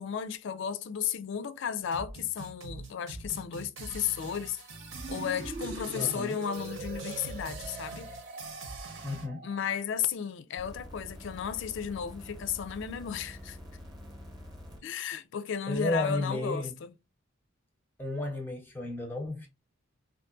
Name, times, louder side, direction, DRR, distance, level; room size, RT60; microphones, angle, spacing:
voice 1, 0.0-4.6 5.1-8.1 9.4-13.6 14.8-16.9, left 8 dB, 60° left, 0.3 m, -34 dB
sound 1, 1.8-9.3, right 3 dB, 70° right, 1.0 m, -44 dB
sound 2, 4.9-9.7, right 4 dB, 40° right, 0.4 m, -43 dB
voice 2, 5.9-6.4 9.0-9.5 15.7-16.7 18.0-19.5, left 2 dB, 10° left, 0.5 m, -33 dB
sound 3, 10.6-14.8 15.7-15.8, left 1 dB, 20° right, 0.8 m, -46 dB
3.6 x 2.5 x 2.5 m
head